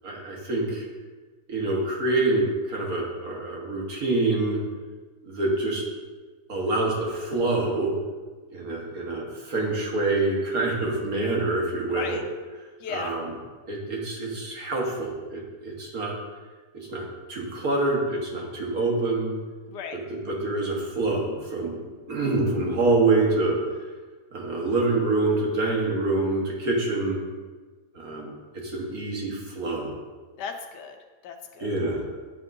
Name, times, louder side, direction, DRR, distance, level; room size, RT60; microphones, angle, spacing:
voice 1, 0.0-0.9 1.5-4.6 5.2-5.8 6.5-7.9 8.5-12.2 12.9-13.3 13.7-16.1 16.7-19.3 20.3-23.6 24.3-27.2 28.0-30.0 31.6-32.0, right 2 dB, 60° right, -2 dB, 1.9 m, -26 dB
voice 2, 11.9-12.2 12.8-13.1 19.7-20.0 30.4-31.0 31.2-31.7, left 6 dB, 80° left, 5 dB, 1.3 m, -35 dB
8.9 x 7.9 x 2.7 m, 1.3 s
omnidirectional pair, 1.8 m